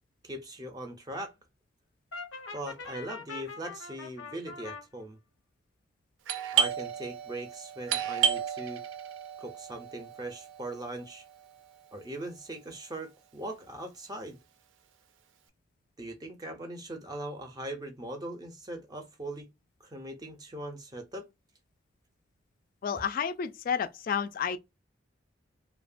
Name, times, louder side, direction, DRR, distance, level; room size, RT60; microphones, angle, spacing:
voice 1, 0.2-1.3 2.5-5.2 6.5-8.8 9.4-11.2 11.9-14.4 16.0-19.5 19.8-21.3, right 1 dB, 20° right, 0.4 m, -40 dB
Brass instrument, 2.1-4.8, left 4 dB, 90° left, 0.7 m, -42 dB
Doorbell, 6.3-11.7, right 8 dB, 80° right, 0.4 m, -32 dB
voice 2, 22.8-24.6, left 7 dB, 45° left, 0.3 m, -31 dB
2.7 x 2.1 x 2.4 m
head